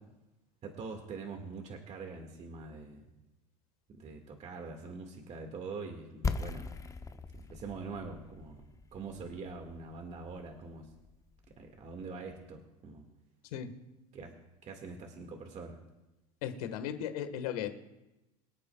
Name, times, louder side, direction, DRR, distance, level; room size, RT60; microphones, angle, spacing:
voice 1, 0.6-3.1 3.9-6.7 7.4-8.6 8.9-10.9 11.6-13.1 14.1-14.3 14.6-15.8, right 4 dB, 35° right, 3 dB, 1.9 m, -44 dB
sound 1, 6.2-12.0, left 4 dB, 15° left, 0.7 m, -40 dB
voice 2, 16.4-17.7, left 9 dB, 75° left, 8 dB, 1.6 m, -36 dB
24.5 x 8.7 x 2.3 m, 1.0 s
hypercardioid pair, 95°, 19 cm